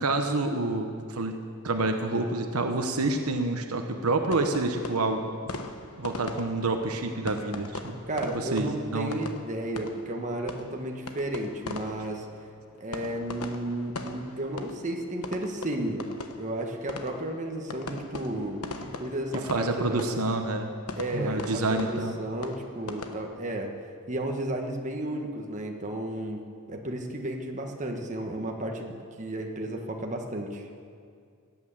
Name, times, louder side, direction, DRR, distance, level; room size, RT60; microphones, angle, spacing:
voice 1, 0.0-1.3 1.6-5.3 6.0-8.0 8.5-9.1 19.5-20.7 21.1-22.1, right 2 dB, 75° right, 5 dB, 1.1 m, -28 dB
sound 1, 4.3-23.1, left 3 dB, 85° left, 1.1 m, -41 dB
voice 2, 8.1-12.3 12.8-16.1 16.4-20.2 21.0-23.7 24.1-26.4 26.7-30.7, right 1 dB, 35° right, 2 dB, 1.4 m, -33 dB
17.0 x 9.2 x 7.4 m, 2.2 s
head